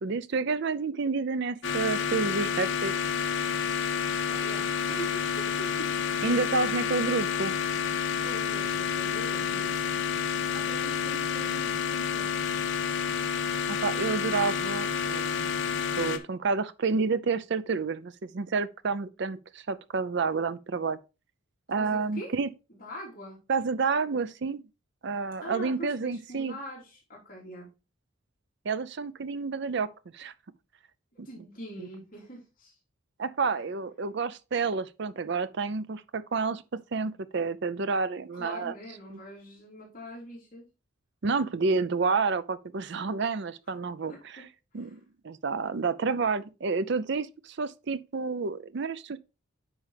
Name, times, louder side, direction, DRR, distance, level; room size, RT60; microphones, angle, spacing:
voice 1, 0.0-2.9 6.2-7.5 13.7-15.6 16.0-21.0 21.7-22.5 23.5-24.6 25.0-26.6 28.6-30.3 31.8-31.9 33.2-36.6 36.9-38.7 39.1-39.2 41.2-44.4 44.7-49.2, right 4 dB, 55° right, 0.5 m, -29 dB
sound 1, 1.6-16.2, left 7 dB, 60° left, 1.0 m, -29 dB
voice 2, 4.3-5.9 8.2-9.8 10.5-12.4 21.8-22.3 22.7-23.4 25.4-27.7 31.2-32.8 33.4-33.6 38.3-40.7 44.1-44.5 44.7-45.0, equal, 40° left, 3.5 m, -43 dB
9.5 x 5.5 x 3.3 m
head